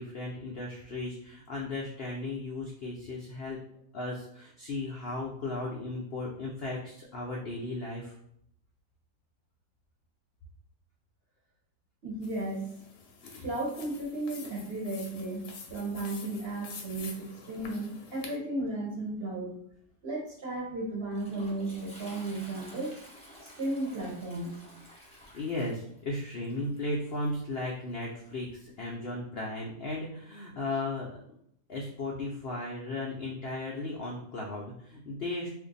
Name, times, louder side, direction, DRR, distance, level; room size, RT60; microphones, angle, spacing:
voice 1, 0.0-3.6 3.9-8.1 13.2-13.5 25.3-31.2 31.7-35.5, left 2 dB, 85° left, -2 dB, 0.5 m, -36 dB
voice 2, 12.0-12.7 13.4-19.6 20.0-23.0 23.4-24.6, right 2 dB, 50° right, -2 dB, 0.8 m, -34 dB
sound 1, 12.2-18.4, left 5 dB, 65° left, 0.8 m, -48 dB
Toilet flush, 20.6-28.9, equal, 10° left, 0.4 m, -53 dB
2.6 x 2.5 x 3.9 m, 0.69 s
omnidirectional pair, 1.7 m